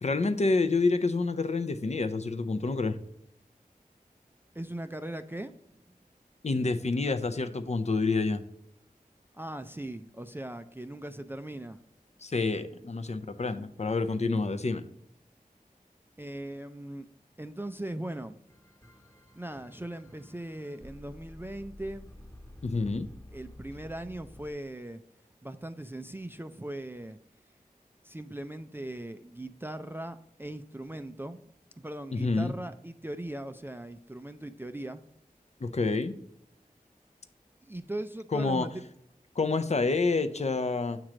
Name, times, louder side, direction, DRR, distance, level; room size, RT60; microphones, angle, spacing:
voice 1, 0.0-3.0 6.4-8.4 12.2-14.9 22.6-23.1 32.1-32.5 35.6-36.2 38.3-38.7 39.4-41.0, left 3 dB, 50° left, 9 dB, 0.5 m, -28 dB
voice 2, 4.6-5.5 9.3-11.8 16.2-17.1 17.4-18.4 19.3-22.1 23.3-25.0 25.4-27.2 28.0-31.4 31.8-35.0 37.6-38.7, right 1 dB, 15° right, 9 dB, 0.3 m, -39 dB
sound 1, 18.5-24.5, left 1 dB, 15° left, 1.2 m, -51 dB
7.4 x 3.1 x 5.0 m, 0.73 s
wide cardioid pair, 40°, 15 cm